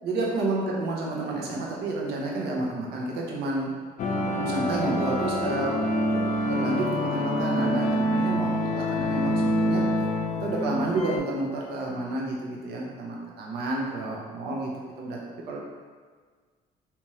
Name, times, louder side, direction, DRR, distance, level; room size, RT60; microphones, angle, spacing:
voice 1, 0.0-3.7 4.3-9.8 10.4-14.7 15.0-15.6, right 2 dB, 75° right, -3 dB, 0.8 m, -30 dB
sound 1, 4.0-11.2, equal, 45° left, 0.4 m, -26 dB
3.4 x 2.8 x 3.0 m, 1.5 s
cardioid pair, 110°, 17 cm